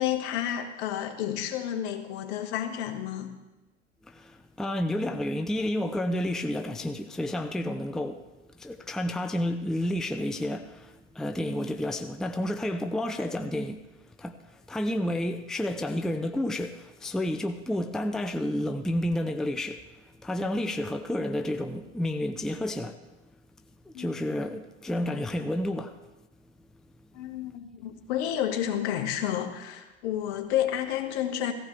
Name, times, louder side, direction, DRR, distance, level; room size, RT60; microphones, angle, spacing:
voice 1, 0.0-3.4 23.9-24.1 27.1-31.5, left 11 dB, 60° left, 1.7 m, -30 dB
voice 2, 4.0-8.3 8.5-13.9 14.2-23.0 23.9-26.0, left 1 dB, ahead, 0.6 m, -30 dB
16.0 x 15.0 x 3.4 m
hypercardioid pair, 90°, 37 cm